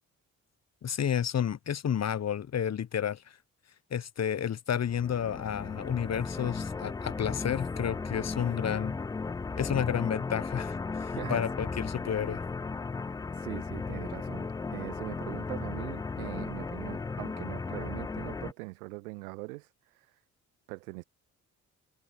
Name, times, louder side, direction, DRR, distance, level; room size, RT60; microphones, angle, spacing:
voice 1, 0.8-3.4 3.9-8.9 9.6-12.4, left 8 dB, 35° left, 1.2 m, -31 dB
sound 1, 4.8-18.5, left 4 dB, 10° left, 0.3 m, -36 dB
voice 2, 13.4-19.7 20.7-21.0, right 24 dB, 75° right, 0.6 m, -41 dB
figure-of-eight pair, 45°, 43 cm